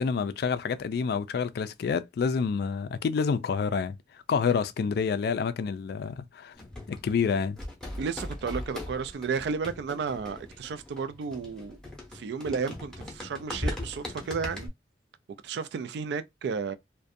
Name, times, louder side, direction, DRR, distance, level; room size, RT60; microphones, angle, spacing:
voice 1, 0.0-4.0 4.3-6.5 6.9-7.6, left 5 dB, 60° left, 0.3 m, -28 dB
sound 1, 6.6-14.7, left 1 dB, 5° left, 0.6 m, -39 dB
voice 2, 8.0-11.8 12.1-14.7 15.4-16.7, right 5 dB, 65° right, 0.3 m, -33 dB
2.5 x 2.1 x 2.5 m
head